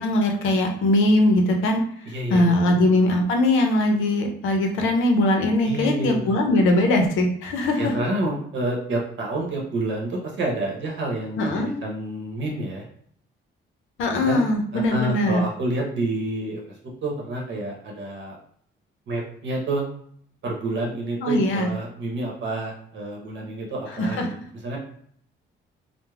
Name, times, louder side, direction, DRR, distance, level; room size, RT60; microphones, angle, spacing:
voice 1, 0.0-7.9 11.4-11.7 14.0-15.4 21.2-21.7 24.0-24.3, left 1 dB, 85° left, 3 dB, 0.6 m, -21 dB
voice 2, 2.1-3.0 5.6-6.3 7.8-12.8 14.2-14.4 14.7-16.6 17.0-18.4 19.1-19.9 20.4-24.4 24.6-24.8, right 1 dB, 70° right, -1 dB, 0.8 m, -28 dB
3.1 x 2.0 x 2.3 m, 0.64 s
cardioid pair, 90°, 20 cm